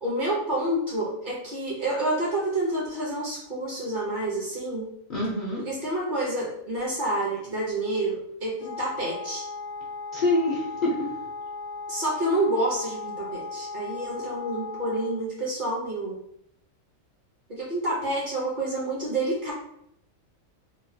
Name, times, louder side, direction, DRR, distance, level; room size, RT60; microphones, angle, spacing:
voice 1, 0.0-4.9 5.6-9.5 11.9-16.1 17.5-19.5, right 1 dB, 45° right, -5 dB, 0.7 m, -28 dB
voice 2, 5.1-5.7 10.1-11.1, left 2 dB, 60° left, -5 dB, 0.5 m, -26 dB
Wind instrument woodwind instrument, 8.6-15.2, left 3 dB, 80° left, 1.0 m, -37 dB
3.0 x 2.3 x 2.6 m, 0.74 s
omnidirectional pair, 1.5 m